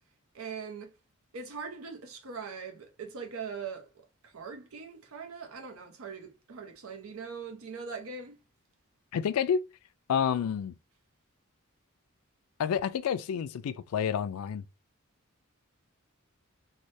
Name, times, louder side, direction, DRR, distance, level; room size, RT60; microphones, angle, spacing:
voice 1, 0.3-0.9 1.3-8.4, right 5 dB, 75° right, 0.6 m, -41 dB
voice 2, 9.1-9.7 10.1-10.8 12.6-14.6, left 7 dB, 90° left, 0.3 m, -29 dB
3.2 x 2.2 x 2.6 m
head